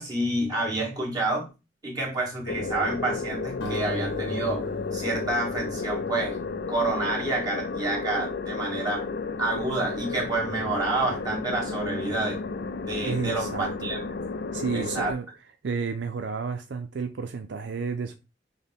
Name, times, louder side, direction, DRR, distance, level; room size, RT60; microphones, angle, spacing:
voice 1, 0.0-1.5 1.8-6.4 6.7-9.1 9.4-12.4 12.9-14.0 14.7-15.1, right 2 dB, 20° right, 1.7 m, -29 dB
sound 1, 2.5-15.1, left 4 dB, 55° left, 0.4 m, -32 dB
sound 2, 3.6-6.8, left 1 dB, 75° left, 1.1 m, -38 dB
voice 2, 13.0-13.9 14.5-15.3 15.6-18.1, right 5 dB, 70° right, 0.5 m, -31 dB
6.3 x 2.1 x 3.5 m
head